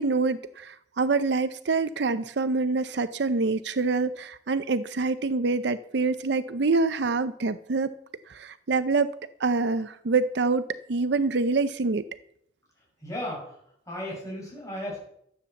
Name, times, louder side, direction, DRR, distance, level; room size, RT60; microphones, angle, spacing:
voice 1, 0.0-7.9 8.3-9.1 9.4-12.1, right 3 dB, 65° right, 13 dB, 0.6 m, -26 dB
voice 2, 13.0-13.6 13.9-15.0, left 1 dB, 20° left, -3 dB, 7.1 m, -35 dB
12.5 x 8.6 x 7.0 m, 0.71 s
head